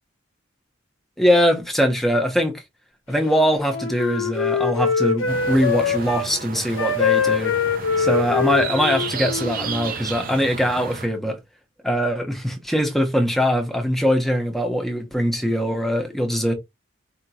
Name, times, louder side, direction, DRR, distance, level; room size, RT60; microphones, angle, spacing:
voice 1, 1.2-2.6 3.1-7.5 8.0-11.4 11.8-16.5, equal, ahead, 0.9 m, -22 dB
Wind instrument woodwind instrument, 3.1-6.3 6.7-9.9, left 6 dB, 80° left, 0.8 m, -23 dB
sound 1, 5.3-11.1, right 5 dB, 45° right, 0.7 m, -33 dB
4.8 x 2.9 x 2.8 m
head